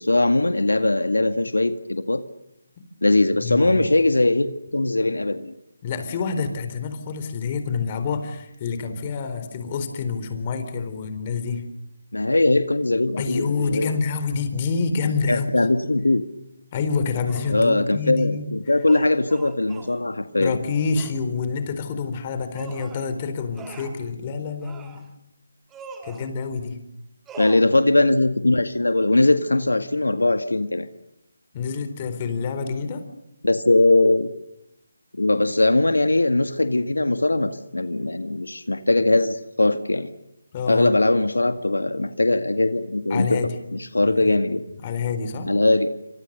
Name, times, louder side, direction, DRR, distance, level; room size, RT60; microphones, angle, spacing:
voice 1, 0.0-2.2 3.0-5.5 12.1-13.9 15.3-16.2 17.5-20.6 27.4-30.9 33.4-34.3 35.1-40.1 40.7-43.4 43.7-44.6 45.4-45.9, left 2 dB, 85° left, 10 dB, 1.9 m, -20 dB
voice 2, 3.4-3.9 5.8-11.6 13.2-15.7 16.7-18.4 20.3-25.1 26.0-26.8 31.5-33.1 40.5-40.9 43.1-43.5 44.0-44.4 44.8-45.5, left 5 dB, 25° left, 9 dB, 4.0 m, -27 dB
sound 1, 17.3-17.6 18.8-20.0 20.9-21.2 22.5-23.1 23.5-24.0 24.6-25.1 25.7-26.3 27.3-27.6, right 4 dB, 10° right, 2.4 m, -41 dB
27.5 x 26.5 x 6.8 m, 0.84 s
figure-of-eight pair, 160°, 0 cm